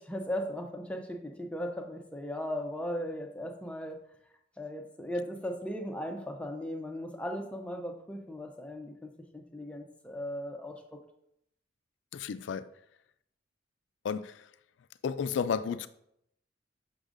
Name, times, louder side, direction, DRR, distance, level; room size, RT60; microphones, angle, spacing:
voice 1, 0.0-4.0 4.6-11.0, equal, 5° left, 3 dB, 0.5 m, -37 dB
voice 2, 12.1-12.7 14.0-14.5 15.0-15.9, left 6 dB, 75° left, 14 dB, 0.3 m, -32 dB
6.4 x 6.1 x 2.5 m, 0.75 s
head